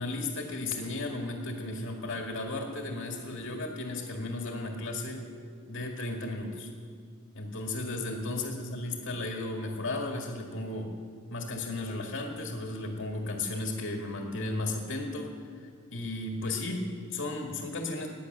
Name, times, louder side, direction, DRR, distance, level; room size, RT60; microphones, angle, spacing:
voice 1, 0.0-5.2 5.7-6.7 7.3-10.9 11.3-15.3 15.9-18.1, left 2 dB, 60° left, 2 dB, 1.7 m, -34 dB
18.0 x 9.8 x 6.6 m, 2.2 s
head